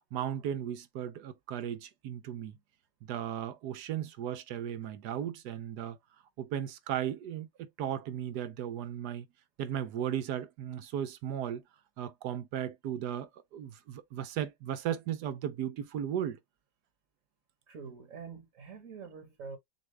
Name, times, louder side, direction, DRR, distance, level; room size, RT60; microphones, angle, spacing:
voice 1, 0.1-2.6 3.0-6.0 6.4-9.3 9.6-11.6 12.0-16.4, right 10 dB, 80° right, 1.3 m, -36 dB
voice 2, 17.7-19.6, right 5 dB, 55° right, 1.5 m, -45 dB
6.7 x 2.4 x 3.3 m
omnidirectional pair, 1.7 m